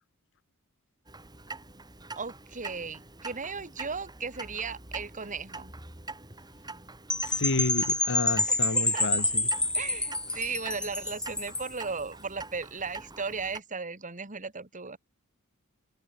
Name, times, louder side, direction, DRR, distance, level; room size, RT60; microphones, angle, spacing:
Clock, 1.1-13.6, right 3 dB, 20° right, 5.1 m, -45 dB
voice 1, 2.1-5.7 8.5-9.1 9.7-15.0, right 5 dB, 35° right, 3.2 m, -36 dB
Percussion / Wind chime, 7.1-11.8, left 2 dB, 5° left, 0.3 m, -28 dB
voice 2, 7.2-9.5, left 3 dB, 60° left, 1.4 m, -30 dB
open air
head